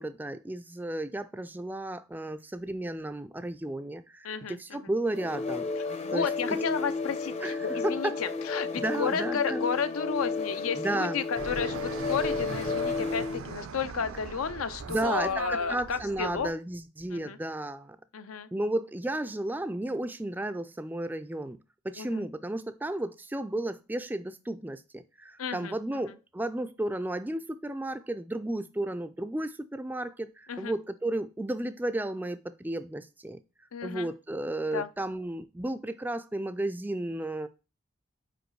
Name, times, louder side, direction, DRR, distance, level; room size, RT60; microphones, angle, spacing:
voice 1, 0.0-5.7 6.1-6.6 7.4-8.1 8.7-9.7 10.7-11.2 14.9-18.0 18.5-21.6 21.8-33.4 33.8-37.5, right 1 dB, 10° right, 0.3 m, -33 dB
voice 2, 4.2-4.8 5.7-16.5 17.1-17.4 18.1-18.5 22.0-22.2 25.4-26.0 30.5-30.7 33.7-34.1 34.7-34.9, left 6 dB, 80° left, 0.6 m, -32 dB
sound 1, 5.1-13.5, left 3 dB, 30° left, 0.6 m, -32 dB
Fixed-wing aircraft airplane, 11.4-16.5, right 5 dB, 75° right, 0.5 m, -40 dB
5.1 x 4.7 x 4.6 m
head